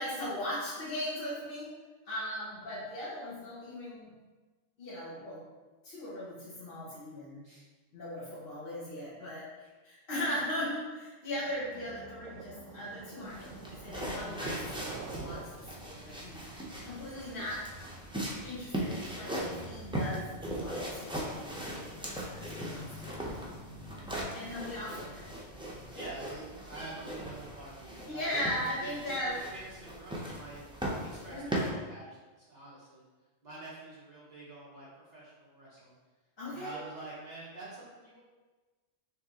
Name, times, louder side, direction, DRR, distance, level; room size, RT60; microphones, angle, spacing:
voice 1, 0.0-1.7 2.1-4.1 4.8-5.4 5.8-7.4 7.9-16.4 16.8-17.6 18.4-21.8 22.3-23.2 24.3-25.3 28.0-29.4 31.3-31.6 36.4-36.8, left 1 dB, 50° left, -10 dB, 1.2 m, -38 dB
sound 1, 11.3-20.4, right 4 dB, 80° right, 1.0 m, -48 dB
sound 2, 13.2-31.7, equal, 10° right, 0.3 m, -39 dB
voice 2, 22.9-23.4 23.8-24.2 25.9-28.4 28.8-30.6 31.0-33.0 33.4-34.9 35.1-35.9 36.5-38.2, right 2 dB, 35° right, -8 dB, 1.1 m, -47 dB
5.1 x 3.3 x 2.9 m, 1.3 s
omnidirectional pair, 1.3 m